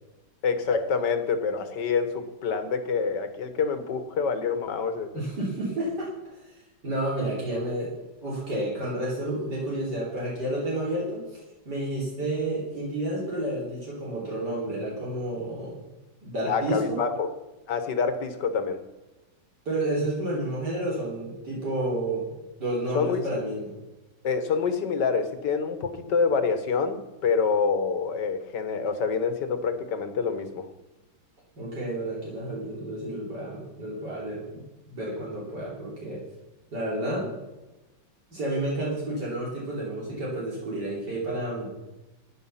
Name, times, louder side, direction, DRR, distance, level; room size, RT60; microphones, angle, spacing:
voice 1, 0.4-5.1 16.5-17.3 17.7-18.8 22.9-23.2 24.2-30.7, left 5 dB, 70° left, 9 dB, 1.9 m, -26 dB
voice 2, 5.1-6.6 6.8-7.9 8.2-15.8 16.2-17.0 19.7-22.3 22.6-23.7 31.6-36.2 36.7-37.3 38.3-41.7, right 1 dB, 65° right, -5 dB, 3.9 m, -30 dB
14.0 x 9.8 x 5.7 m, 1.1 s
omnidirectional pair, 2.0 m